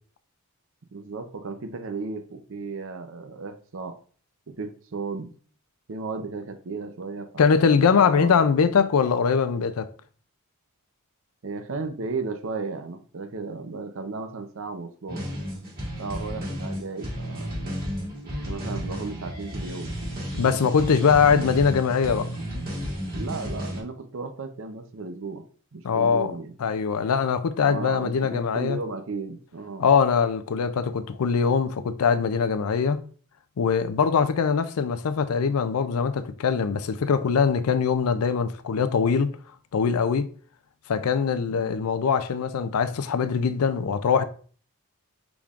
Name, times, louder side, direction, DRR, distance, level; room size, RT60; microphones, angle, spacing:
voice 1, 0.9-4.0 4.5-5.3 5.9-8.4 11.4-15.2 16.0-17.5 18.3-19.9 21.0-21.2 23.1-25.4 25.7-26.5 27.6-29.8 41.5-41.8, right 4 dB, 60° right, 0.6 m, -35 dB
voice 2, 7.4-9.9 20.4-22.3 25.8-26.3 26.6-28.8 29.8-33.0 33.6-39.4 39.7-40.3 40.9-44.2, left 6 dB, 80° left, 0.4 m, -22 dB
sound 1, 15.1-23.8, equal, 40° right, 1.8 m, -33 dB
6.0 x 3.5 x 2.4 m
head